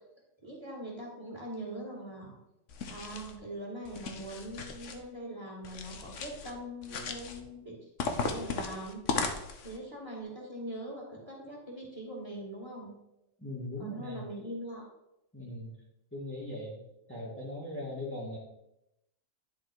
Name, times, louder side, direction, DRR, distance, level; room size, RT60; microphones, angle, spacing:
voice 1, 0.4-2.4 2.9-7.9 8.2-9.0 9.6-12.9 13.8-14.9, right 1 dB, 20° right, -2 dB, 2.3 m, -42 dB
sound 1, 2.7-3.4 3.8-5.0 5.6-6.5 6.8-7.4 8.0-9.8, left 4 dB, 70° left, 1.2 m, -36 dB
voice 2, 13.4-14.2 15.3-15.7 16.1-16.8 17.1-18.4, left 1 dB, 10° left, -6 dB, 1.6 m, -39 dB
10.5 x 4.1 x 4.7 m, 0.86 s
omnidirectional pair, 1.3 m